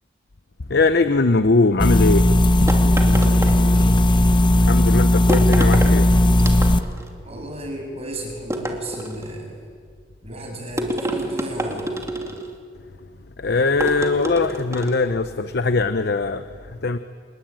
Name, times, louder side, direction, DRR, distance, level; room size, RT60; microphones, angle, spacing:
voice 1, 0.7-2.3 4.6-6.1 13.4-17.0, left 3 dB, 60° left, 10 dB, 0.8 m, -20 dB
sound 1, 1.8-6.8, left 1 dB, 25° left, 0.9 m, -16 dB
sound 2, 2.7-4.1 5.3-6.0 6.4-7.1 8.5-9.4 10.8-12.6 13.8-15.1, right 1 dB, 15° right, 2.7 m, -28 dB
voice 2, 2.7-3.9 7.2-9.6 10.2-11.9, right 1 dB, 35° right, 2 dB, 7.0 m, -33 dB
28.0 x 21.5 x 9.0 m, 2.1 s
head